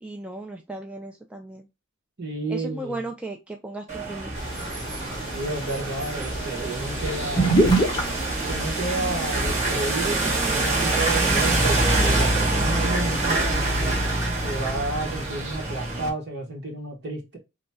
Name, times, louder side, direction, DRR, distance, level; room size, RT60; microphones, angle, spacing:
voice 1, 0.0-1.7 2.5-4.3, right 2 dB, 5° right, 0.3 m, -36 dB
voice 2, 2.2-3.0 5.3-7.6 8.5-17.4, right 2 dB, 55° right, 1.4 m, -31 dB
sound 1, 3.9-16.1, right 2 dB, 35° right, 1.5 m, -25 dB
sound 2, 4.4-9.8, right 2 dB, 20° left, 1.0 m, -27 dB
3.1 x 2.3 x 4.0 m
head